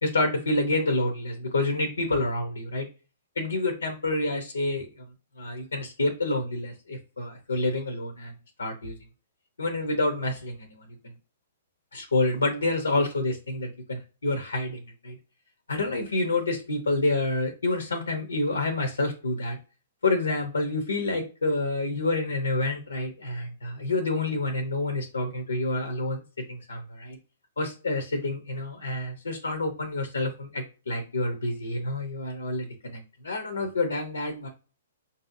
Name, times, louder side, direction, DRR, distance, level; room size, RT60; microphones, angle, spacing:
voice 1, 0.0-2.9 3.4-4.9 5.4-8.3 8.6-8.9 9.6-10.8 11.9-15.1 15.7-19.6 20.0-26.2 26.5-27.2 27.6-32.7 32.9-34.5, left 2 dB, 90° left, 6 dB, 0.7 m, -28 dB
5.3 x 2.7 x 2.6 m, 0.35 s
hypercardioid pair, 125°, 0 cm